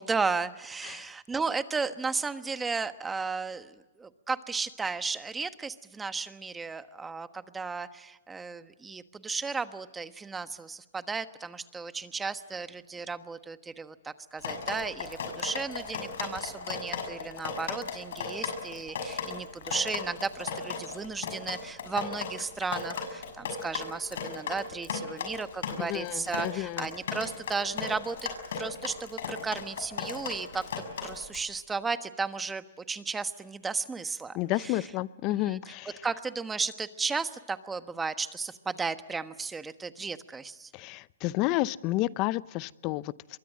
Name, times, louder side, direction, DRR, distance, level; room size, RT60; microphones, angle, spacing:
voice 1, 0.0-28.3 28.6-30.7 31.0-34.9 35.3-35.7 36.0-40.7, right 4 dB, 10° right, 11 dB, 1.3 m, -34 dB
Drip, 14.4-31.4, left 5 dB, 75° left, 6.4 m, -36 dB
voice 2, 25.8-26.9 34.3-35.9 40.7-43.1, left 17 dB, 40° left, 18 dB, 0.7 m, -30 dB
24.5 x 23.0 x 7.6 m, 1.1 s
hypercardioid pair, 130°, 0 cm